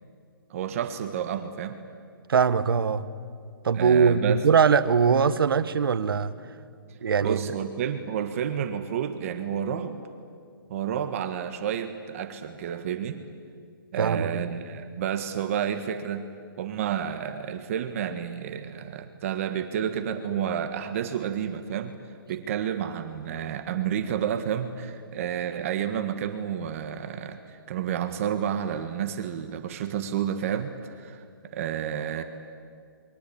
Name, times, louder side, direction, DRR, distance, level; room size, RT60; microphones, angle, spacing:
voice 1, 0.5-1.8 3.7-4.4 6.9-10.0 10.7-13.2 13.9-16.2 16.6-21.9 22.3-31.2 31.5-32.2, right 9 dB, 35° right, 7 dB, 1.6 m, -30 dB
voice 2, 2.3-3.0 3.6-6.3 7.0-7.4 14.0-14.4, right 6 dB, 75° right, 13 dB, 1.5 m, -21 dB
29.0 x 23.0 x 8.7 m, 2.2 s
hypercardioid pair, 165°, 12 cm